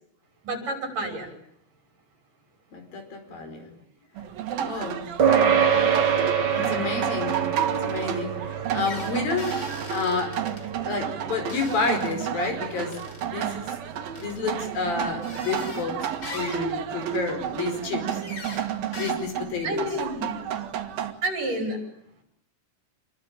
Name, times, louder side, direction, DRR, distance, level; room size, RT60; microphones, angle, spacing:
voice 1, 0.4-1.3 19.6-20.5 21.2-21.8, right 1 dB, 65° right, 5 dB, 7.6 m, -29 dB
voice 2, 2.7-3.7 4.6-5.0 6.5-9.6 9.9-10.4 10.8-13.8 14.2-16.0 16.3-18.2 19.0-19.9, left 4 dB, 85° left, 6 dB, 6.6 m, -30 dB
sound 1, 4.2-21.1, right 9 dB, 85° right, 3.6 m, -32 dB
sound 2, 5.2-14.9, right 7 dB, 40° right, 1.9 m, -27 dB
sound 3, 8.8-10.6 11.5-12.2 12.9-13.3 14.1-14.3 15.2-15.9 16.2-16.7 18.2-18.7 18.9-19.1, left 2 dB, 30° left, 4.3 m, -40 dB
27.0 x 21.5 x 9.0 m, 0.71 s
omnidirectional pair, 4.0 m